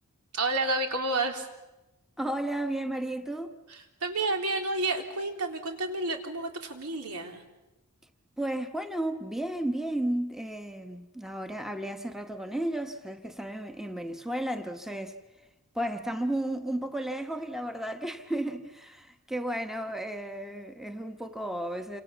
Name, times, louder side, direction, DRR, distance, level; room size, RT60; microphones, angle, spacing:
voice 1, 0.3-1.5 3.7-7.4, right 2 dB, 90° right, 3.7 m, -30 dB
voice 2, 2.2-3.5 8.4-15.2 15.7-22.0, right 1 dB, ahead, 1.1 m, -33 dB
29.0 x 26.0 x 7.2 m
head